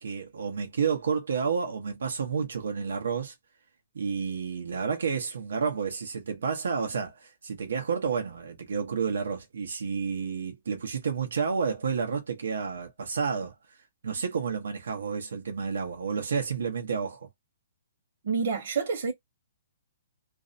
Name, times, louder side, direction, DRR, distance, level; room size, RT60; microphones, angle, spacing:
voice 1, 0.0-3.3 3.9-13.5 14.0-17.3, right 6 dB, 85° right, 0.8 m, -30 dB
voice 2, 18.2-19.1, right 5 dB, 55° right, 1.0 m, -28 dB
2.5 x 2.1 x 2.5 m
hypercardioid pair, 170°, 0 cm